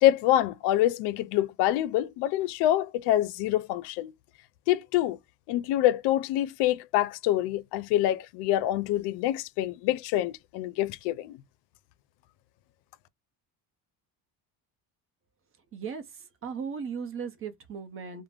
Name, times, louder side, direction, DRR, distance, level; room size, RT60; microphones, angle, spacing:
voice 1, 0.0-4.1 4.7-5.2 5.5-11.4, left 13 dB, 90° left, 0.5 m, -26 dB
voice 2, 15.7-18.2, right 6 dB, 35° right, 0.6 m, -37 dB
2.5 x 2.1 x 3.2 m
cardioid pair, 150°, 39 cm